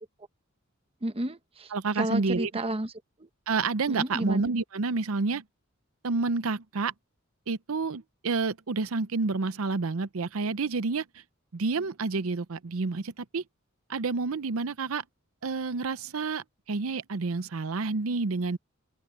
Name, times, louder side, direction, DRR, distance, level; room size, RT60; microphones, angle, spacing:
voice 1, 1.0-2.9 3.2-3.3 3.9-4.4, right 1 dB, 25° right, 1.0 m, -31 dB
voice 2, 1.7-2.5 3.5-5.4 6.0-6.9 7.5-11.0 11.5-13.4 13.9-15.0 15.4-18.6, right 4 dB, 75° right, 0.7 m, -29 dB
open air
head